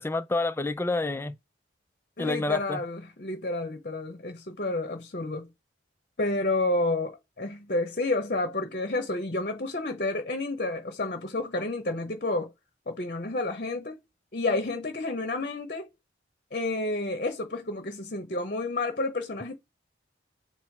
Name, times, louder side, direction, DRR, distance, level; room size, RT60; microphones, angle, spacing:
voice 1, 0.0-1.4 2.2-2.8, left 2 dB, 15° left, 0.3 m, -28 dB
voice 2, 2.2-5.5 6.2-12.5 12.9-14.0 14.3-15.9 16.5-19.6, left 2 dB, 45° left, 0.8 m, -30 dB
4.4 x 2.1 x 4.5 m
head